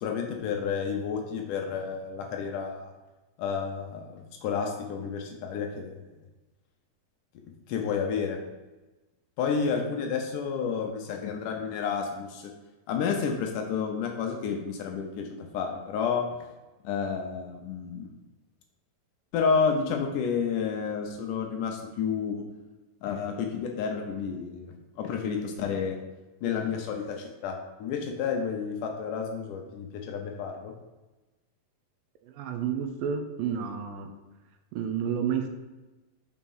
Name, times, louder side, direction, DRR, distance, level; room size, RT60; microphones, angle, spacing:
voice 1, 0.0-2.9 3.4-6.0 7.7-8.4 9.4-12.5 12.9-16.3 16.8-18.1 19.3-22.4 23.0-26.0 26.4-30.7, left 6 dB, 75° left, 3 dB, 2.0 m, -30 dB
voice 2, 32.4-34.1 34.7-35.5, right 8 dB, 80° right, 6 dB, 2.2 m, -30 dB
6.1 x 4.3 x 5.4 m, 1.1 s
omnidirectional pair, 4.0 m